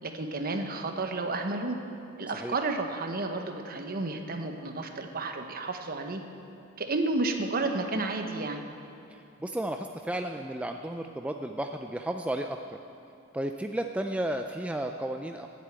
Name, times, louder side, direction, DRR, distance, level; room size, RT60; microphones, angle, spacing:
voice 1, 0.0-1.8 2.2-6.2 6.8-8.6, right 2 dB, 45° right, 5 dB, 1.0 m, -31 dB
voice 2, 9.1-12.8 13.3-15.5, right 1 dB, 5° right, 4 dB, 0.3 m, -33 dB
11.0 x 8.4 x 8.8 m, 2.8 s
head